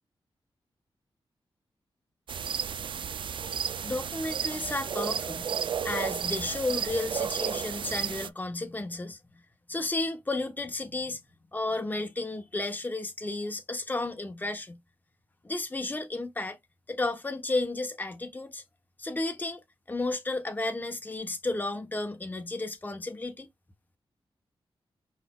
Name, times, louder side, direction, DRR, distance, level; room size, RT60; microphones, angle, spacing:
sound 1, 2.3-8.3, right 7 dB, 60° right, 0.4 m, -32 dB
voice 1, 3.8-5.5 5.8-9.2 9.7-11.2 11.5-14.8 15.4-16.6 16.9-18.6 19.0-19.6 19.9-23.5, left 2 dB, 20° left, 1.0 m, -32 dB
4.9 x 4.2 x 2.3 m
wide cardioid pair, 110°, 10 cm